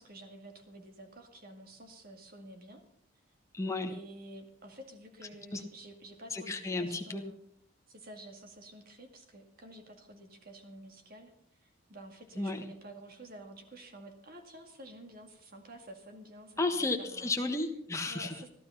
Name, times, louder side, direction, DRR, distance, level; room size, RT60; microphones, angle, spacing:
voice 1, 0.0-2.8 3.9-7.4 7.9-17.4 18.1-18.5, right 1 dB, 45° right, 5 dB, 2.1 m, -50 dB
voice 2, 3.5-3.9 5.5-5.6 6.3-7.2 12.4-12.6 16.6-18.3, left 2 dB, 15° left, 4 dB, 1.4 m, -33 dB
15.0 x 12.5 x 5.7 m, 0.70 s
head